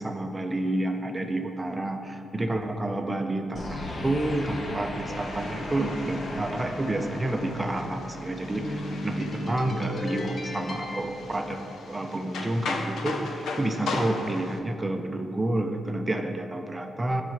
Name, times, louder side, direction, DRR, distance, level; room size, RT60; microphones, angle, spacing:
voice 1, 0.0-17.2, right 1 dB, 20° right, 5 dB, 0.5 m, -29 dB
sound 1, 3.5-12.1, left 1 dB, 40° left, 1.0 m, -36 dB
sound 2, 5.1-14.6, left 3 dB, 85° left, 0.7 m, -38 dB
9.8 x 4.1 x 5.9 m, 2.6 s
cardioid pair, 100°, 0 cm